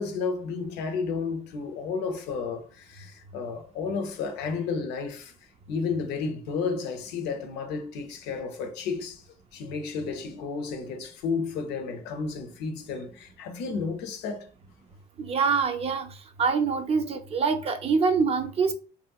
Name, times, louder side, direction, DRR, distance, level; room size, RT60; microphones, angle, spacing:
voice 1, 0.0-5.3 5.7-9.2 9.5-14.5, left 5 dB, 90° left, 0.6 m, -32 dB
voice 2, 15.2-16.1 16.4-18.7, right 5 dB, 35° right, 0.5 m, -25 dB
3.0 x 2.6 x 2.3 m
cardioid pair, 110°, 17 cm